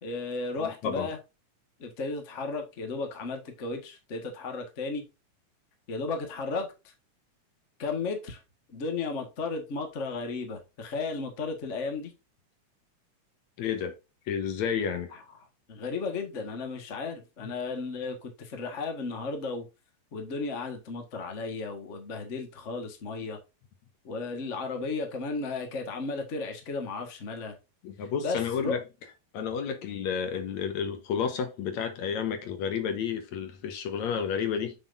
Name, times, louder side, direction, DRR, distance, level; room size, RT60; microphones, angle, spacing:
voice 1, 0.0-1.2 1.8-5.0 5.9-6.9 7.8-8.4 8.7-12.1 15.7-19.7 20.1-23.4 24.0-27.5 28.2-28.8, left 3 dB, 35° left, 1.3 m, -34 dB
voice 2, 0.6-1.1 13.6-13.9 14.3-15.1 27.8-28.8 29.3-34.7, left 7 dB, 70° left, 2.3 m, -31 dB
7.6 x 6.3 x 2.6 m
omnidirectional pair, 3.5 m